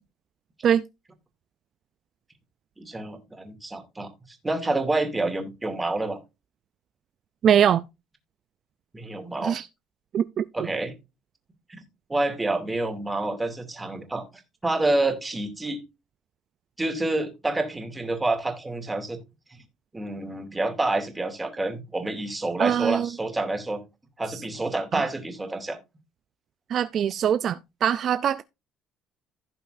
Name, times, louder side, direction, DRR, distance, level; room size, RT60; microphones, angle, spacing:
voice 1, 2.8-6.2 8.9-9.6 10.5-10.9 11.7-11.8 12.1-14.2 14.6-15.8 16.8-19.2 19.5-19.6 19.9-23.8 24.2-25.8, right 2 dB, 15° right, 2.5 m, -28 dB
voice 2, 7.4-7.8 9.4-9.7 10.1-10.5 22.6-23.1 24.9-25.1 26.7-28.4, right 9 dB, 55° right, 0.4 m, -22 dB
16.0 x 5.5 x 2.6 m
supercardioid pair, 95°, 0 cm